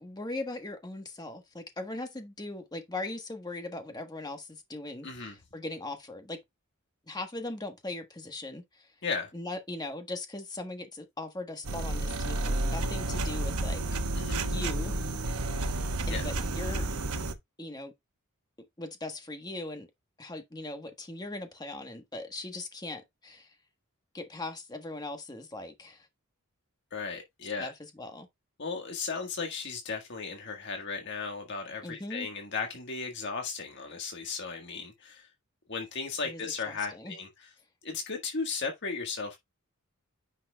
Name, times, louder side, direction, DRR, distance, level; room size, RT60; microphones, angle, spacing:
voice 1, 0.0-6.4 7.1-8.9 9.3-14.0 14.5-14.9 16.1-16.9 17.6-17.9 18.8-19.9 20.2-23.5 24.1-26.1 27.6-28.3 31.8-32.3 36.2-36.4 36.7-37.2, left 2 dB, 20° left, 1.3 m, -39 dB
voice 2, 5.0-5.3 9.0-9.3 14.1-14.4 16.1-16.2 26.9-27.7 28.6-35.3 35.7-37.3 37.8-39.4, left 4 dB, 50° left, 1.6 m, -35 dB
sound 1, 11.6-17.3, right 2 dB, 90° right, 1.1 m, -31 dB
9.8 x 5.8 x 2.3 m
head